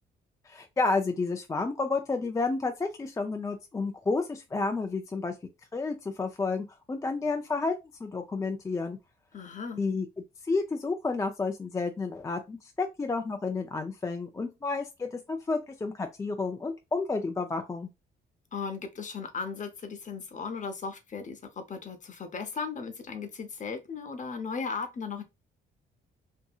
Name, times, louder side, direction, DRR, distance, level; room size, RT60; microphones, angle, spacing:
voice 1, 0.5-5.3 5.7-7.7 8.0-9.0 9.8-10.1 10.4-17.9, left 3 dB, 15° left, 0.3 m, -31 dB
voice 2, 9.3-9.8 18.5-25.2, left 5 dB, 40° left, 0.7 m, -36 dB
2.7 x 2.6 x 2.3 m
cardioid pair, 90°, 20 cm